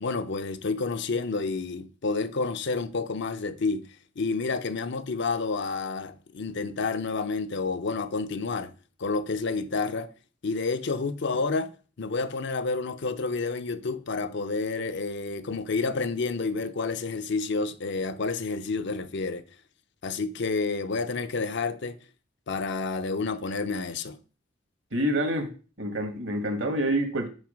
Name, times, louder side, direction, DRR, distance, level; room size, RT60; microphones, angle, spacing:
voice 1, 0.0-3.9 4.2-8.7 9.0-10.1 10.4-19.4 20.0-22.0 22.5-24.2, left 4 dB, 65° left, 0.6 m, -29 dB
voice 2, 24.9-25.5 25.8-27.3, right 1 dB, 75° right, 1.7 m, -27 dB
6.3 x 5.4 x 5.1 m
head